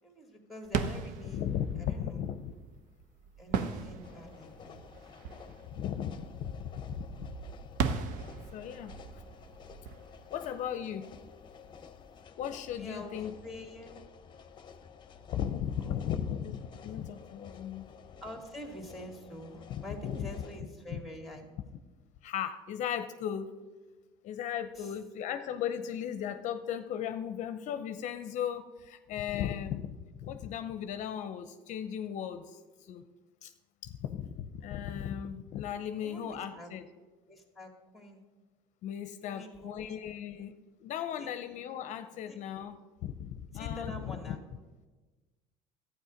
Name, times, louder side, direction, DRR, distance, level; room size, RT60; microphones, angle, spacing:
voice 1, 0.0-1.5 1.8-2.3 3.4-4.8 12.8-13.1 13.4-13.9 15.8-16.2 18.2-21.5 24.8-24.9 36.0-36.7 37.3-38.2 39.2-39.9 41.2-41.3 42.2-42.4 43.5-44.4, left 1 dB, ahead, 4 dB, 2.3 m, -46 dB
sound 1, 0.6-11.2, right 6 dB, 65° right, 0.9 m, -38 dB
voice 2, 1.3-2.5 5.7-7.3 8.5-9.2 10.3-11.1 12.4-13.3 15.3-17.9 19.7-20.3 20.9-21.0 22.2-23.5 24.2-33.0 33.4-33.5 33.8-36.9 38.8-40.5 40.8-44.4, left 9 dB, 55° left, 9 dB, 0.7 m, -36 dB
sound 2, 4.0-20.6, left 6 dB, 35° left, 0.9 m, -52 dB
12.0 x 8.9 x 5.1 m, 1.2 s
supercardioid pair, 105°, 14 cm